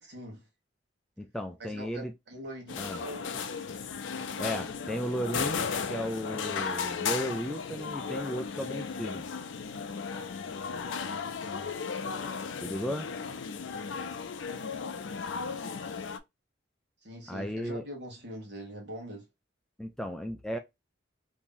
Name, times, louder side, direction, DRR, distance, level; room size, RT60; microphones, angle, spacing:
voice 1, 0.0-0.5 1.6-3.7 12.7-13.0 17.0-19.3, equal, 65° right, 1.3 m, -43 dB
voice 2, 1.2-2.1 2.8-3.0 4.4-9.3 12.6-13.1 17.3-17.8 19.8-20.6, equal, 5° left, 0.3 m, -35 dB
sound 1, 2.7-16.2, left 5 dB, 75° left, 0.5 m, -35 dB
2.9 x 2.6 x 3.6 m
head